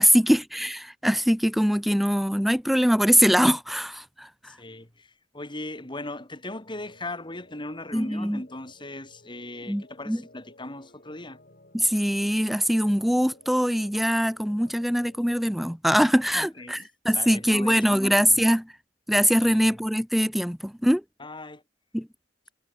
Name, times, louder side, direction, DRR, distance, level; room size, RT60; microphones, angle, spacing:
voice 1, 0.0-4.5 7.9-8.4 9.7-10.2 11.7-16.8 17.0-18.7 19.1-21.0 21.9-22.1, equal, ahead, 0.6 m, -22 dB
voice 2, 4.4-11.4 16.3-16.9 17.1-18.4 19.4-19.6 21.2-21.6, left 2 dB, 25° left, 4.6 m, -38 dB
sound 1, 6.7-15.8, left 1 dB, 50° left, 6.9 m, -55 dB
head